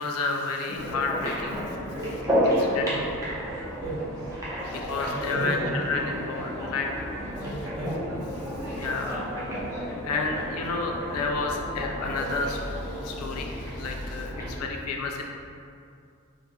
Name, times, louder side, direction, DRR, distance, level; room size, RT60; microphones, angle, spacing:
voice 1, 0.0-1.6 2.5-3.1 3.6-3.7 4.6-7.1 8.7-9.3 9.8-15.2, left 3 dB, 85° left, 2 dB, 0.4 m, -31 dB
sound 1, 0.7-14.7, equal, 15° right, 0.5 m, -32 dB
voice 2, 1.9-2.4 2.8-3.0 3.4-3.5 3.8-4.3 5.0-5.7 7.4-7.9 8.2-8.4, right 1 dB, 60° right, -10 dB, 1.2 m, -35 dB
3.6 x 2.1 x 2.9 m, 2.4 s
head